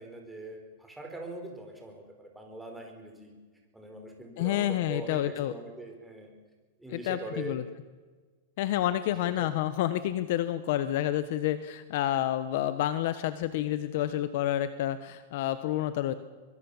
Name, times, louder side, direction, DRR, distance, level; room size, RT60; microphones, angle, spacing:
voice 1, 0.0-3.3 3.7-6.3 6.8-7.6 9.1-9.5, right 2 dB, 5° right, 2 dB, 4.9 m, -42 dB
voice 2, 4.4-5.5 6.9-7.6 8.6-16.1, left 13 dB, 55° left, 12 dB, 1.2 m, -29 dB
23.5 x 23.0 x 7.3 m, 1.4 s
supercardioid pair, 150°, 0 cm